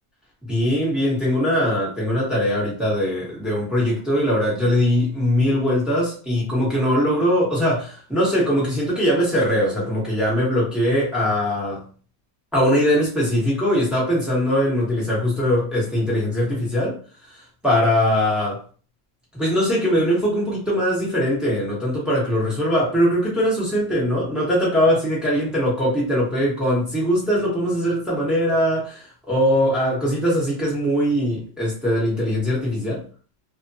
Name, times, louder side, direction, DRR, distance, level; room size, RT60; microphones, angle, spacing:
voice 1, 0.5-11.8 12.5-17.0 17.3-18.6 19.3-33.0, equal, ahead, -6 dB, 0.8 m, -21 dB
3.2 x 2.1 x 2.7 m, 0.40 s
omnidirectional pair, 2.1 m